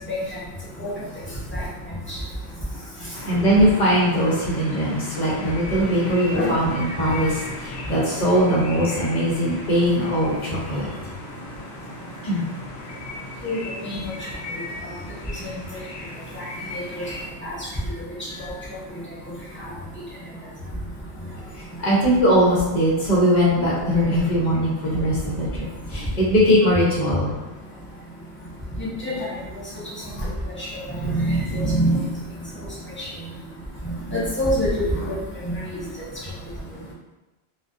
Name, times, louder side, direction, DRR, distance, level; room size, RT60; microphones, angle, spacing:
voice 1, 0.1-0.4 0.8-0.9 1.5-1.6 2.1-2.2 6.3-6.5 13.4-14.0 16.7-17.0 17.4-17.6 18.4-18.5 28.8-29.3 30.6-30.7 31.1-32.0 33.0-33.1 34.1-35.2 35.4-35.8, equal, 15° left, -8 dB, 0.4 m, -25 dB
voice 2, 3.0-10.9 12.2-12.4 21.5-25.6 25.9-27.3, equal, 45° left, -7 dB, 0.8 m, -20 dB
sound 1, 3.1-17.3, left 1 dB, 80° left, 0.9 m, -36 dB
2.3 x 2.3 x 2.5 m, 1.1 s
omnidirectional pair, 1.1 m